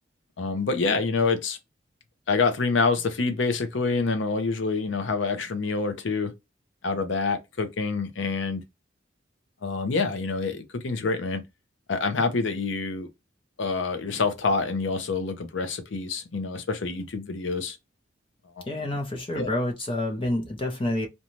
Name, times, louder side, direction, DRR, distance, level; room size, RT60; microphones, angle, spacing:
voice 1, 0.4-1.6 2.3-6.3 6.8-8.6 9.6-11.4 11.9-13.1 13.6-17.8 18.6-18.7 19.4-19.5, left 4 dB, 75° left, 0.6 m, -27 dB
voice 2, 18.7-21.1, left 1 dB, 30° left, 0.6 m, -28 dB
2.6 x 2.3 x 3.0 m
head